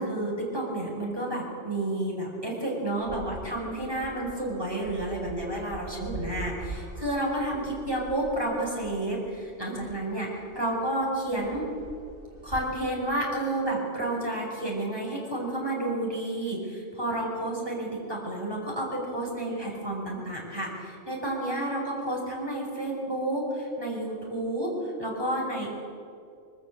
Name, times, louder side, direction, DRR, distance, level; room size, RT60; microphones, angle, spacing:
voice 1, 0.0-11.7 12.4-25.7, right 1 dB, 20° right, -3 dB, 5.8 m, -30 dB
sound 1, 3.0-12.7, right 3 dB, 50° right, 2.6 m, -44 dB
25.0 x 22.5 x 7.9 m, 2.4 s
omnidirectional pair, 1.2 m